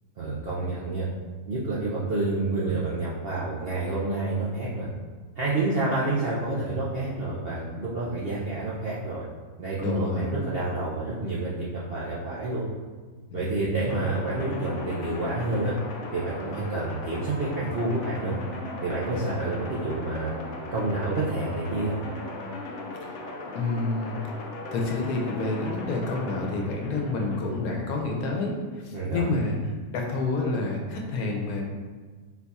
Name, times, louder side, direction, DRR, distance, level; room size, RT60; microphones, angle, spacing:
voice 1, 0.2-1.1 1.5-4.9 5.4-9.2 9.6-12.7 13.3-15.7 16.1-18.4 18.8-20.3 20.7-22.0 28.9-29.4, right 2 dB, 55° right, -7 dB, 0.7 m, -29 dB
voice 2, 9.8-10.3 13.3-13.5 19.1-19.4 23.0-23.2 23.5-24.2 24.7-29.6 29.9-31.6, left 3 dB, 90° left, 0 dB, 1.2 m, -29 dB
sound 1, 13.9-27.6, left 2 dB, 65° left, 0.9 m, -38 dB
4.3 x 2.3 x 4.0 m, 1.4 s
omnidirectional pair, 1.5 m